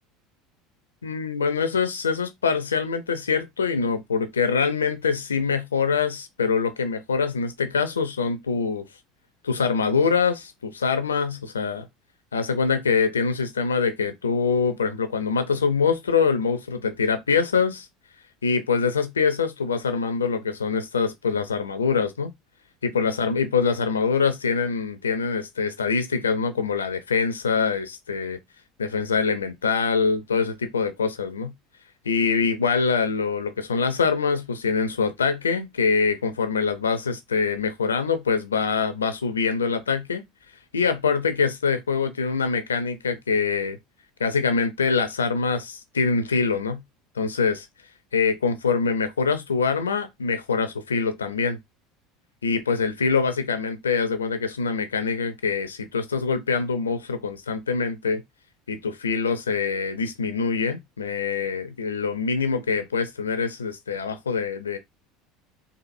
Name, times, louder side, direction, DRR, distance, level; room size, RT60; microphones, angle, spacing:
voice 1, 1.0-8.9 9.4-11.9 12.3-17.9 18.4-22.3 22.8-28.4 28.8-31.5 32.0-40.2 40.7-43.8 44.2-46.8 47.2-47.7 48.1-51.6 52.4-58.2 58.7-64.8, left 5 dB, 85° left, 0.6 m, -24 dB
4.2 x 2.7 x 2.6 m
figure-of-eight pair, 70°, 0 cm